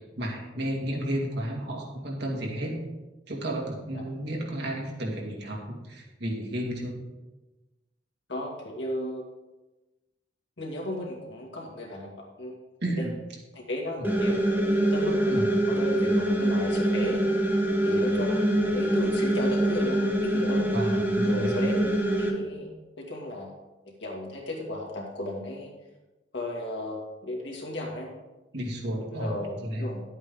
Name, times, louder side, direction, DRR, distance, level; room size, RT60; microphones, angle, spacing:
voice 1, 0.1-2.8 3.3-7.0 12.8-13.1 14.0-14.1 15.3-15.4 20.7-21.5 28.5-29.9, right 1 dB, 65° right, -2 dB, 2.1 m, -32 dB
voice 2, 8.3-9.3 10.6-12.6 13.0-13.1 13.5-17.2 17.8-20.7 21.3-21.8 22.2-22.7 23.0-23.5 24.0-25.7 26.3-28.1 29.1-30.0, left 1 dB, 70° left, -2 dB, 2.3 m, -35 dB
sound 1, 14.0-22.3, right 1 dB, 10° right, 1.2 m, -24 dB
11.0 x 8.0 x 3.8 m, 1.1 s
head